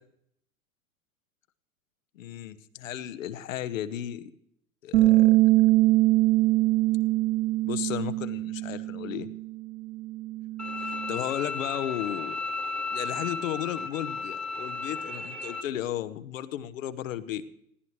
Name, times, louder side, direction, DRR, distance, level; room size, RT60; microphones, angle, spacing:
voice 1, 2.1-4.3 4.8-5.4 7.6-9.3 11.1-12.4 12.9-17.4, left 11 dB, 65° left, 12 dB, 1.0 m, -34 dB
Bass guitar, 4.9-11.2, right 18 dB, 60° right, 2.3 m, -23 dB
Bowed string instrument, 10.6-15.6, left 3 dB, ahead, 0.5 m, -34 dB
20.0 x 16.0 x 3.2 m, 0.69 s
figure-of-eight pair, 90°, 42 cm